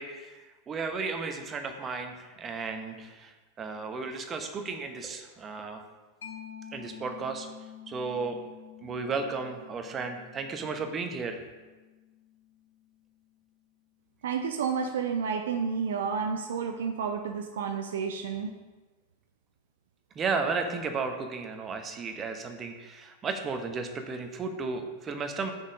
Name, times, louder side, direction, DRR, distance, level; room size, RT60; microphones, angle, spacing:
voice 1, 0.0-5.8 6.7-7.5 7.9-8.4 8.8-11.4 20.1-25.5, right 4 dB, 25° right, 6 dB, 0.9 m, -34 dB
Mallet percussion, 6.2-13.5, left 9 dB, 65° left, 1.1 m, -49 dB
voice 2, 14.2-18.6, right 6 dB, 60° right, 5 dB, 0.5 m, -30 dB
6.3 x 5.5 x 5.3 m, 1.2 s
figure-of-eight pair, 90°, 0 cm